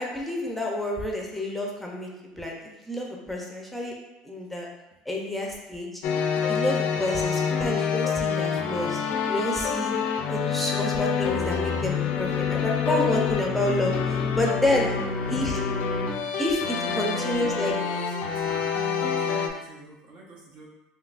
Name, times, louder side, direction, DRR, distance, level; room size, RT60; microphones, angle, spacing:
voice 1, 0.0-3.9 4.2-4.7 5.1-5.9 6.5-9.9 10.3-14.9 15.3-15.6 16.4-17.7, left 1 dB, 5° left, -1 dB, 0.5 m, -29 dB
sound 1, 6.0-19.5, left 6 dB, 65° left, 0.4 m, -27 dB
voice 2, 9.8-10.3 15.0-15.1 16.9-20.7, right 3 dB, 65° right, -2 dB, 0.8 m, -47 dB
3.6 x 2.7 x 2.4 m, 0.96 s
cardioid pair, 120°, 3 cm